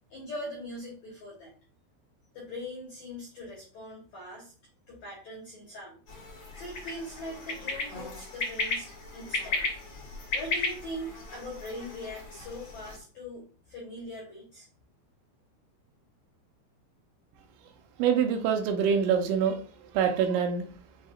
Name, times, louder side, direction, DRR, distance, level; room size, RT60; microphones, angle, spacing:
voice 1, 0.1-1.5 2.3-4.5 4.9-6.0 6.5-8.9 9.1-9.6 10.3-14.7, left 1 dB, 85° left, -4 dB, 1.6 m, -41 dB
sound 1, 6.1-13.0, left 3 dB, 60° left, 1.2 m, -35 dB
voice 2, 18.0-19.6 19.9-20.6, right 7 dB, 90° right, 4 dB, 3.0 m, -25 dB
7.4 x 2.7 x 2.4 m, 0.39 s
omnidirectional pair, 5.3 m